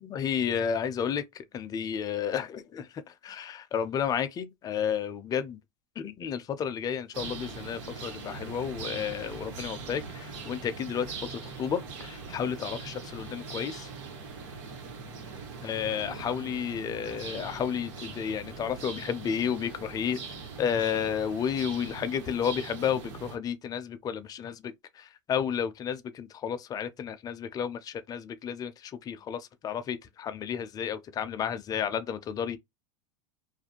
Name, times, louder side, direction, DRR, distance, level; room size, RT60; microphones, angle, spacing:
voice 1, 0.0-5.6 6.0-13.9 15.6-20.2 20.6-32.6, left 8 dB, 25° left, 0.4 m, -32 dB
sound 1, 7.1-23.4, right 4 dB, 75° right, 1.2 m, -41 dB
2.5 x 2.2 x 2.8 m
supercardioid pair, 125°, 16 cm